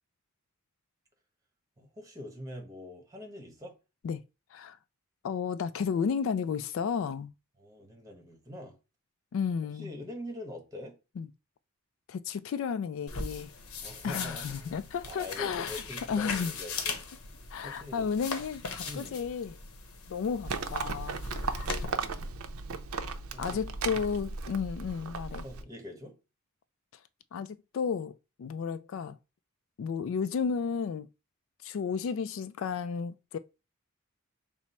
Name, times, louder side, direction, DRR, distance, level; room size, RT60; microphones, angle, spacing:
voice 1, 1.8-3.7 7.6-8.8 9.7-11.0 13.8-14.8 15.1-17.0 17.6-18.1 18.8-19.2 21.6-22.3 23.3-23.6 25.4-26.1, left 1 dB, 15° right, 1.2 m, -44 dB
voice 2, 5.2-7.3 9.3-9.9 11.2-11.3 12.1-13.5 14.0-15.8 16.1-16.5 17.5-19.5 20.1-21.2 23.4-25.4 27.3-29.2 29.8-31.1 31.6-33.4, left 6 dB, 60° left, 0.3 m, -33 dB
sound 1, 13.1-21.8, left 4 dB, 85° left, 0.8 m, -39 dB
Livestock farm animals working animals, 20.4-25.6, right 4 dB, 75° right, 0.5 m, -36 dB
5.9 x 2.0 x 4.2 m
head